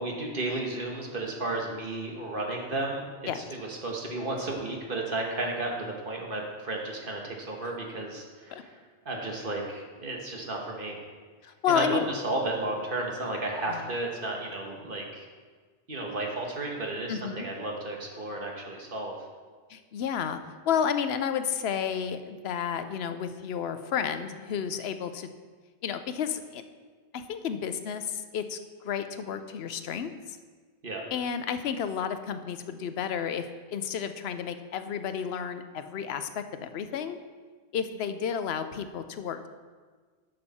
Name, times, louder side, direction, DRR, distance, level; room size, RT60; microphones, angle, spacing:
voice 1, 0.0-3.1 3.3-8.8 9.0-11.0 11.7-15.2 15.9-19.1 30.8-31.0, right 2 dB, 55° right, 0 dB, 1.5 m, -33 dB
voice 2, 11.4-12.1 13.7-13.8 17.1-17.5 19.7-20.4 20.6-25.3 25.8-26.6 27.1-28.6 28.8-30.4 31.1-33.4 33.7-37.2 37.7-39.5, left 8 dB, 75° left, 10 dB, 0.9 m, -31 dB
11.5 x 6.5 x 4.2 m, 1.5 s
omnidirectional pair, 1.1 m